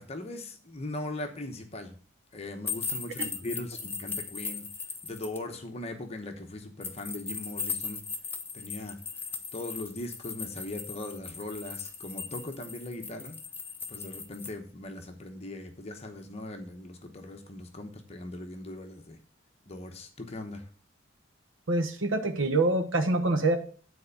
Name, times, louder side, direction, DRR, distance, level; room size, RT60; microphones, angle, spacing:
voice 1, 0.0-2.0 2.3-4.7 5.0-8.0 8.5-9.0 9.5-13.4 13.9-19.2 19.7-20.7, left 1 dB, 30° left, 4 dB, 0.9 m, -39 dB
sound 1, 2.7-5.4 6.8-14.5, left 5 dB, 10° left, 0.8 m, -38 dB
voice 2, 21.7-23.6, right 2 dB, 75° right, 5 dB, 1.1 m, -25 dB
9.4 x 4.3 x 6.8 m, 0.42 s
head